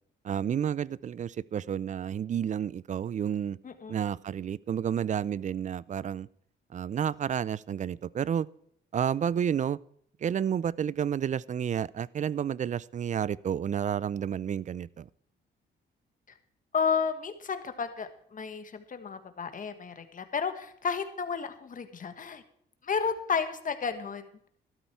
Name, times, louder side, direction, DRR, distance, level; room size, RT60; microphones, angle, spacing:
voice 1, 0.2-3.6 3.9-6.3 6.7-8.5 8.9-9.8 10.2-15.1, right 8 dB, 40° right, 0.4 m, -30 dB
voice 2, 16.7-22.4 22.8-24.2, left 6 dB, 40° left, 1.6 m, -32 dB
13.0 x 12.5 x 4.5 m
cardioid pair, 90°, 20 cm